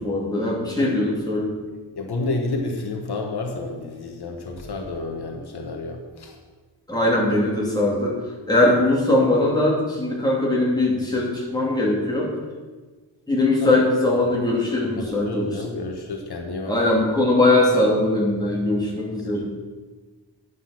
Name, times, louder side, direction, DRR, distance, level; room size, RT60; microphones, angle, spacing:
voice 1, 0.0-1.5 6.9-8.2 8.5-12.3 13.3-15.7 16.7-19.4, left 2 dB, 10° left, -5 dB, 2.9 m, -21 dB
voice 2, 0.6-0.9 1.9-6.4 13.6-13.8 15.0-16.8 19.2-19.4, left 2 dB, 65° left, 2 dB, 1.3 m, -30 dB
9.9 x 8.0 x 5.9 m, 1.4 s
wide cardioid pair, 165°, 43 cm